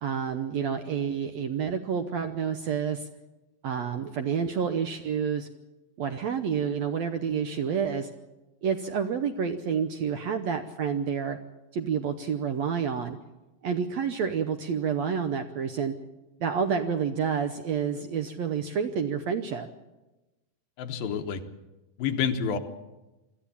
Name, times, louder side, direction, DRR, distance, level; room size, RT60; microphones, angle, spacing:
voice 1, 0.0-3.1 3.6-5.5 6.0-8.1 8.6-11.4 11.7-13.2 13.6-16.0 16.4-19.7, right 7 dB, 70° right, 7 dB, 1.7 m, -29 dB
voice 2, 20.8-21.4 22.0-22.6, left 7 dB, 85° left, 6 dB, 3.0 m, -28 dB
23.0 x 14.0 x 8.5 m, 1.1 s
omnidirectional pair, 4.1 m